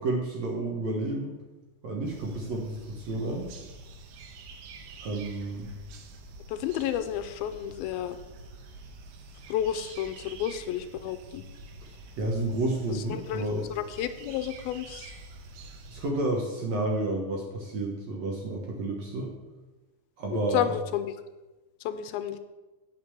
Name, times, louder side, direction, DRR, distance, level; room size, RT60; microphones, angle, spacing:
voice 1, 0.0-1.4 1.8-3.5 5.0-5.7 11.9-13.7 15.9-19.3 20.2-20.7, right 2 dB, 60° right, 0 dB, 1.9 m, -30 dB
sound 1, 2.0-16.1, right 3 dB, 85° right, 2.9 m, -47 dB
voice 2, 6.5-8.2 9.5-11.5 12.9-13.5 13.8-15.1 20.3-21.1 21.8-22.4, left 10 dB, 80° left, 10 dB, 2.4 m, -31 dB
9.4 x 6.6 x 6.9 m, 1.1 s
omnidirectional pair, 4.5 m